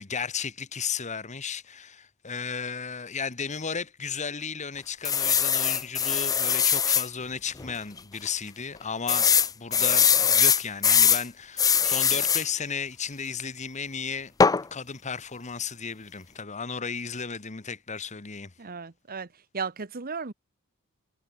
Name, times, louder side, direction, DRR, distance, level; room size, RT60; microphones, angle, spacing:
voice 1, 0.0-14.3 14.7-18.5, left 6 dB, 35° left, 1.2 m, -34 dB
sound 1, 5.0-7.1 7.6-7.7 8.0-8.1 9.1-11.2 11.6-12.5 14.4-14.6, left 7 dB, 15° left, 0.4 m, -21 dB
voice 2, 18.6-19.3 19.5-20.3, right 5 dB, 45° right, 1.1 m, -35 dB
head